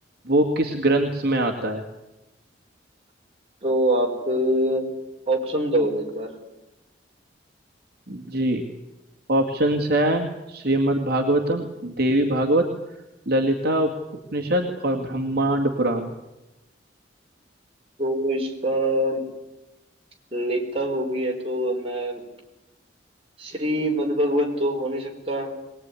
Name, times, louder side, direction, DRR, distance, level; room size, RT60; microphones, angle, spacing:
voice 1, 0.3-1.8 8.1-8.6 9.3-12.6 13.3-13.9 14.3-16.1, right 1 dB, 55° right, 1 dB, 2.2 m, -22 dB
voice 2, 3.6-4.9 5.3-6.4 18.0-19.2 20.3-22.2 23.4-25.5, right 1 dB, 30° right, 0 dB, 4.8 m, -24 dB
22.0 x 19.5 x 9.8 m, 0.98 s
head